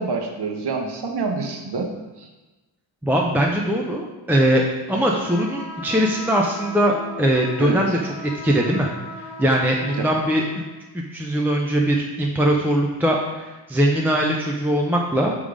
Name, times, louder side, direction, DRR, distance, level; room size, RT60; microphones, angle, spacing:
voice 1, 0.0-1.9 2.2-2.3 7.6-8.0 10.0-10.1, right 4 dB, 55° right, 3 dB, 0.9 m, -26 dB
voice 2, 3.0-8.9 9.4-10.4 10.9-15.4, right 1 dB, 5° right, -1 dB, 0.4 m, -21 dB
sound 1, 5.2-10.6, left 2 dB, 90° left, 1.1 m, -37 dB
6.2 x 3.7 x 4.9 m, 1.1 s
wide cardioid pair, 155°, 47 cm